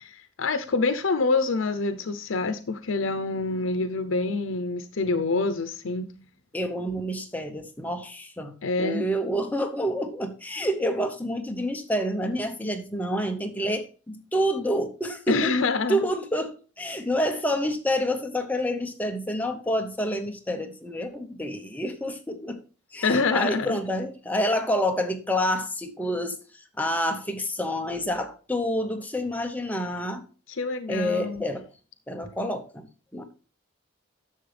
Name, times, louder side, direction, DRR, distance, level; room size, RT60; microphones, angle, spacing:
voice 1, 0.1-6.1 8.6-9.0 15.3-16.1 23.0-23.8 30.6-31.4, left 3 dB, 85° left, 0.7 m, -26 dB
voice 2, 6.5-15.5 15.9-22.6 22.9-30.2 30.9-31.7 32.1-33.2, equal, 10° left, 0.9 m, -28 dB
10.5 x 7.0 x 3.3 m
head